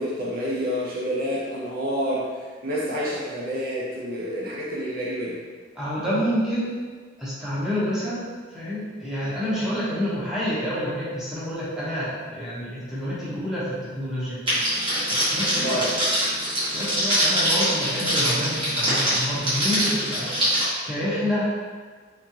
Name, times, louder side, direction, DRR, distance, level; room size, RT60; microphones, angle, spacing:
voice 1, 0.0-5.4 15.5-15.9, equal, 50° right, -6 dB, 0.5 m, -28 dB
voice 2, 5.7-6.7 7.2-8.2 8.5-14.4 15.1-15.9 16.7-20.3 20.8-21.5, equal, 5° right, -10 dB, 0.9 m, -28 dB
Crackle, 14.5-20.6, equal, 25° right, 1.3 m, -24 dB
3.6 x 3.1 x 2.8 m, 1.5 s
head